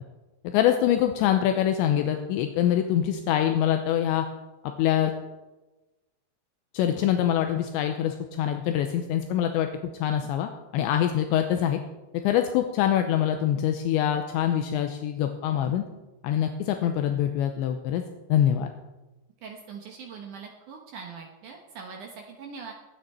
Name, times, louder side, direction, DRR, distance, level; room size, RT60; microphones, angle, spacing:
voice 1, 0.4-4.3 4.8-5.1 6.7-9.7 10.0-11.8 12.2-15.9 16.2-18.0 18.3-18.7, left 10 dB, 80° left, 6 dB, 2.9 m, -24 dB
voice 2, 19.4-22.7, right 5 dB, 75° right, 1 dB, 1.8 m, -42 dB
21.5 x 8.9 x 4.3 m, 1.1 s
omnidirectional pair, 5.4 m